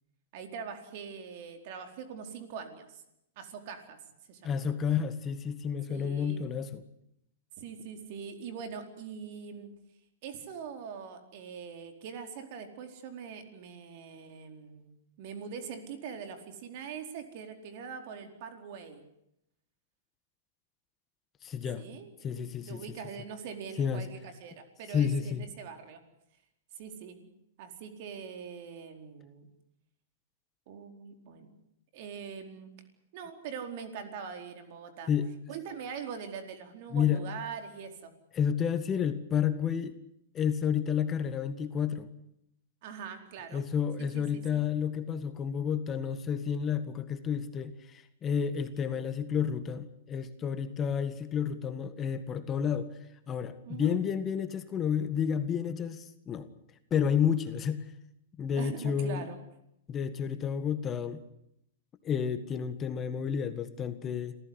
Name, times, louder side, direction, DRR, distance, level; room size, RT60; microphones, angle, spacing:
voice 1, 0.3-3.0 3.4-4.0 4.3-4.7 5.9-6.5 7.6-9.7 10.2-19.0 21.8-22.3 22.6-26.0 26.7-27.3 27.6-29.5 30.7-31.5 31.9-32.7 33.1-35.1 35.5-38.1 42.8-43.6 44.0-44.6 53.6-54.0 58.5-59.4, right 6 dB, 55° right, 6 dB, 4.5 m, -43 dB
voice 2, 4.4-6.8 21.4-21.8 22.2-22.8 23.8-24.0 24.9-25.4 35.1-35.3 36.9-37.2 38.3-39.9 40.3-42.1 43.5-52.9 53.3-56.5 56.9-57.8 58.4-59.3 59.9-61.2 62.0-64.4, left 7 dB, 25° left, 10 dB, 1.7 m, -30 dB
27.0 x 15.5 x 9.9 m, 0.79 s
hypercardioid pair, 125°, 0 cm